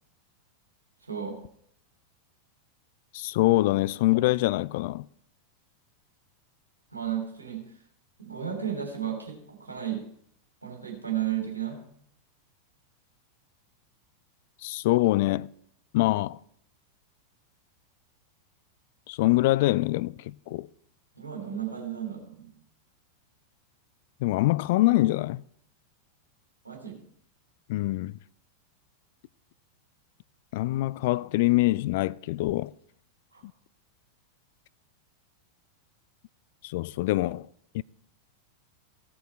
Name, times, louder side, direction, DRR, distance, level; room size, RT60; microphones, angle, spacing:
voice 1, 1.0-1.4 6.9-7.6 8.2-10.0 10.6-11.8 21.1-22.6 26.6-27.0 33.3-33.4, right 9 dB, 80° right, 3.2 m, -33 dB
voice 2, 3.1-5.1 14.6-15.5 15.9-16.4 19.1-20.7 24.2-25.4 27.7-28.1 30.5-32.7 33.4-33.5 36.6-37.5 37.7-37.8, left 18 dB, 50° left, 0.3 m, -24 dB
16.0 x 6.3 x 4.4 m
figure-of-eight pair, 90°, 0 cm